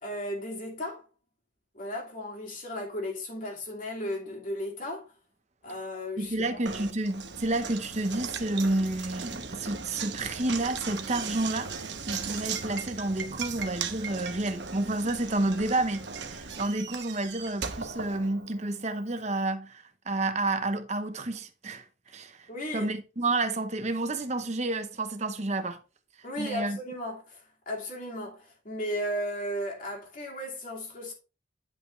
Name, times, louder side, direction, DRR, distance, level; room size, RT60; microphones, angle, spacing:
voice 1, 0.0-1.0 1.7-5.1 5.6-6.6 22.5-22.9 26.2-31.1, equal, 45° left, 2.7 m, -35 dB
voice 2, 6.2-21.8 22.1-22.4 22.7-25.8 26.4-26.8, right 2 dB, 35° right, 0.9 m, -30 dB
Knock, 6.6-18.8, right 5 dB, 65° right, 1.0 m, -38 dB
10.5 x 5.5 x 3.2 m
head